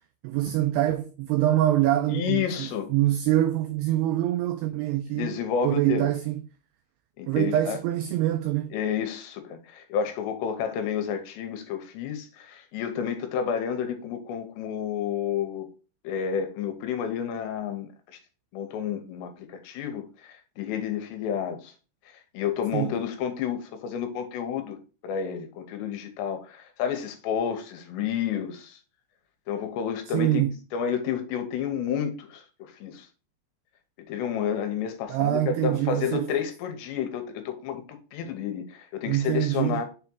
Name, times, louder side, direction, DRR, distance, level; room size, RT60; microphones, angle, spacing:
voice 1, 0.2-5.3 5.6-6.3 7.3-8.7 22.7-23.0 30.1-30.6 35.1-36.3 39.1-39.8, right 13 dB, 90° right, 2.3 m, -25 dB
voice 2, 2.1-2.9 5.1-6.1 7.2-7.8 8.7-15.7 16.0-18.2 18.5-21.7 22.1-24.8 25.0-28.8 29.5-30.5 30.7-33.1 34.0-39.8, left 8 dB, 85° left, 2.9 m, -30 dB
6.6 x 3.5 x 4.4 m
omnidirectional pair, 5.2 m